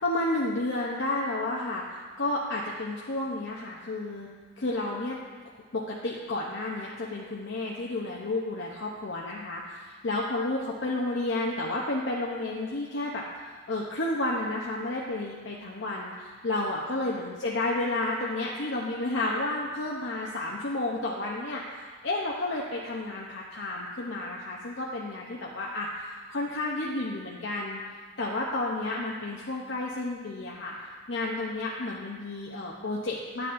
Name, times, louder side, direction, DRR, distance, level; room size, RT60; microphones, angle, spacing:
voice 1, 0.0-4.3 4.6-5.2 5.7-27.8 28.2-30.7 31.1-33.5, left 2 dB, 60° left, -3 dB, 0.7 m, -31 dB
10.0 x 7.8 x 2.6 m, 1.5 s
head